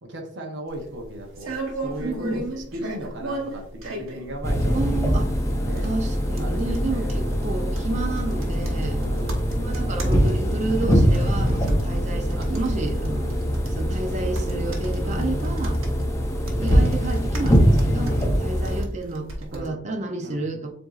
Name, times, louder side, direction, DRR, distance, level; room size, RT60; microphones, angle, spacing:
voice 1, 0.0-1.5 1.8-5.1 5.6-5.9 6.4-7.1 9.0-9.5 12.4-12.5 13.2-13.6 15.0-16.2 18.0-18.6 19.5-19.9 20.2-20.5, right 1 dB, 60° right, 2 dB, 0.8 m, -37 dB
sound 1, 0.7-19.7, right 1 dB, 80° right, 1.0 m, -35 dB
voice 2, 2.0-2.5 4.7-5.3 5.8-9.0 9.5-13.3 13.8-15.8 16.4-20.7, right 2 dB, 35° right, 5 dB, 0.5 m, -30 dB
sound 2, 4.4-18.8, equal, 15° left, 0.6 m, -23 dB
7.6 x 2.7 x 2.4 m, 0.70 s
head